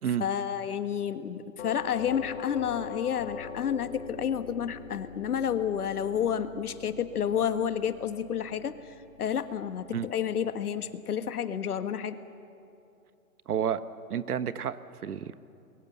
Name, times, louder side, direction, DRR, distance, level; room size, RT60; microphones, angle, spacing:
voice 1, 0.2-12.2, left 8 dB, 90° left, 11 dB, 1.5 m, -30 dB
Doorbell, 1.6-10.4, left 7 dB, 55° left, 1.6 m, -44 dB
voice 2, 13.5-13.8 14.1-15.3, right 8 dB, 90° right, 14 dB, 1.2 m, -30 dB
25.5 x 22.0 x 6.9 m, 2.7 s
hypercardioid pair, 165°, 44 cm